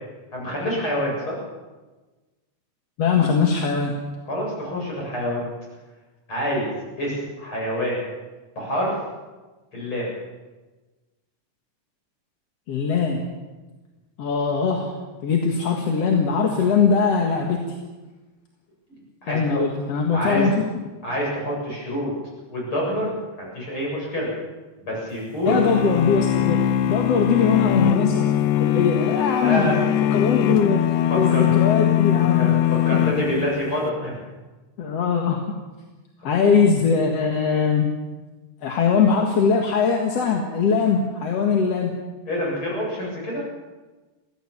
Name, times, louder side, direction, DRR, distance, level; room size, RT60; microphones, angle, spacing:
voice 1, 0.3-1.4 4.3-5.5 6.3-6.7 7.0-8.0 8.6-8.9 9.7-10.1 19.2-19.6 20.1-20.4 21.0-22.1 22.5-23.1 23.4-24.3 24.8-25.6 29.4-29.7 31.1-31.5 32.3-32.5 32.9-34.2 42.3-43.4, equal, 35° left, -3 dB, 8.8 m, -26 dB
voice 2, 3.0-3.9 12.7-13.2 14.2-17.8 19.3-20.6 25.5-26.6 26.9-28.2 28.6-32.6 32.9-33.0 34.8-35.4 36.2-37.9 38.6-41.9, left 5 dB, 55° left, 1 dB, 2.5 m, -21 dB
sound 1, 25.5-33.8, left 11 dB, 75° left, 1.9 m, -21 dB
23.5 x 16.5 x 7.3 m, 1.2 s
omnidirectional pair, 3.9 m